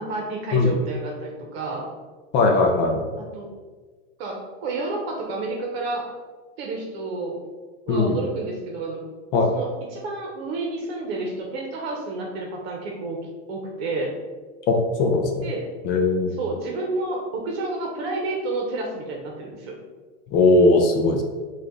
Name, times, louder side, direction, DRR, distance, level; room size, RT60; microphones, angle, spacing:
voice 1, 0.0-1.9 3.2-3.5 4.2-6.0 6.6-7.4 7.9-9.0 9.5-13.2 13.5-14.1 15.4-15.7 16.4-19.7, right 2 dB, 60° right, -1 dB, 0.9 m, -30 dB
voice 2, 2.3-3.1 7.9-8.2 9.3-9.5 14.7-15.5 15.8-16.3 20.3-21.2, left 3 dB, 30° left, 2 dB, 0.4 m, -19 dB
4.9 x 2.5 x 3.6 m, 1.4 s
supercardioid pair, 140°, 34 cm